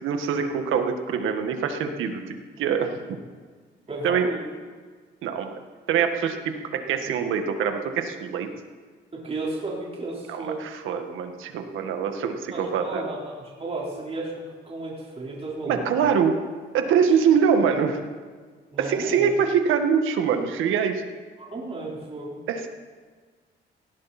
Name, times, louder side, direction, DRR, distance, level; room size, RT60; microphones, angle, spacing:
voice 1, 0.0-3.0 4.0-4.3 5.2-5.5 5.9-8.5 10.3-13.0 15.7-16.4 16.7-18.0 18.8-21.0 22.5-22.7, right 7 dB, 85° right, 6 dB, 1.8 m, -24 dB
voice 2, 3.9-4.6 9.1-10.7 12.5-15.9 18.7-19.3 21.4-22.4, right 2 dB, 30° right, -4 dB, 4.6 m, -33 dB
18.5 x 17.5 x 4.4 m, 1.5 s
cardioid pair, 90°, 20 cm